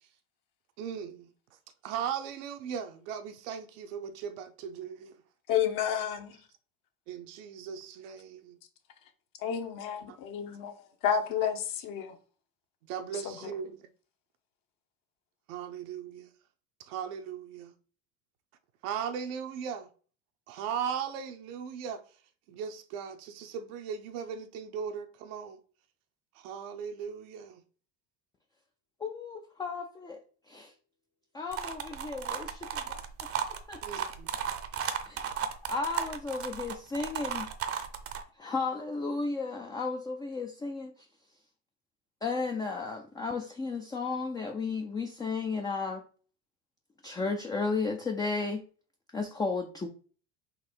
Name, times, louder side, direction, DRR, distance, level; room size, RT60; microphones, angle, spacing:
voice 1, 0.8-1.3 1.8-5.1 7.1-8.6 10.1-10.2 12.9-13.8 15.5-16.3 16.9-17.7 18.8-19.9 20.5-22.0 22.5-25.6 26.4-27.6 33.8-34.3, right 7 dB, 75° right, 0.8 m, -38 dB
voice 2, 5.5-6.4 9.4-10.7 11.0-12.1 13.1-13.5, left 8 dB, 55° left, 1.0 m, -31 dB
voice 3, 29.0-30.2 30.5-30.7 31.3-33.3 33.7-33.8 35.1-37.5 38.4-40.9 42.2-46.0 47.0-48.6 49.1-49.9, left 4 dB, 10° left, 0.3 m, -34 dB
sound 1, 31.5-38.2, right 8 dB, 35° right, 0.6 m, -35 dB
4.0 x 2.5 x 4.4 m
supercardioid pair, 105°, 39 cm